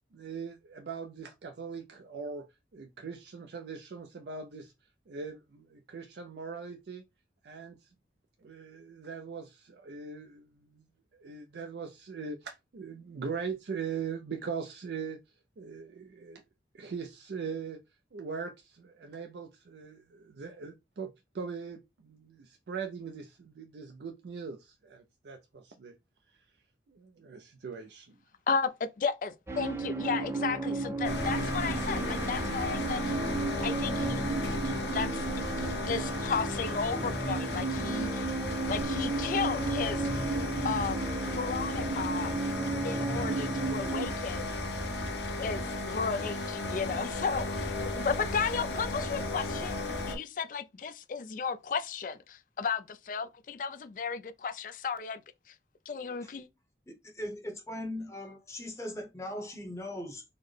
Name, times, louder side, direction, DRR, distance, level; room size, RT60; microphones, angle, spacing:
voice 1, 0.1-2.5 2.7-4.7 5.1-7.1 7.4-7.9 8.4-10.8 11.1-16.4 16.7-17.8 18.1-26.0 26.3-26.6 26.9-28.2, right 5 dB, 70° right, 0.4 m, -41 dB
voice 2, 28.5-33.2 33.5-34.2 34.6-38.3 38.7-40.3 40.6-41.0 41.3-42.3 42.8-44.5 45.4-49.7 50.0-55.2 55.5-55.6 55.9-56.5, left 5 dB, 50° left, 0.3 m, -34 dB
sound 1, 29.5-44.1, right 3 dB, 15° right, 0.4 m, -34 dB
sound 2, 31.0-50.2, left 2 dB, 80° left, 0.8 m, -34 dB
voice 3, 56.9-60.2, left 1 dB, 15° left, 0.8 m, -39 dB
3.9 x 2.1 x 3.2 m
head